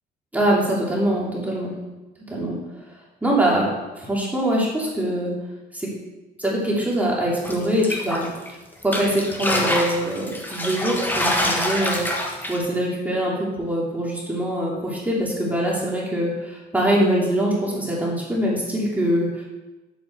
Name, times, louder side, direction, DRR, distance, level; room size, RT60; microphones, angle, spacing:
voice 1, 0.3-1.7 2.3-2.5 3.2-3.7 4.0-5.3 5.7-5.9 6.4-8.3 8.8-12.1 12.5-19.4, right 1 dB, 10° right, -5 dB, 2.8 m, -23 dB
sound 1, 7.4-8.5 8.8-12.6, left 1 dB, 10° left, 1.4 m, -25 dB
9.3 x 8.0 x 4.6 m, 1.1 s
cardioid pair, 110°, 17 cm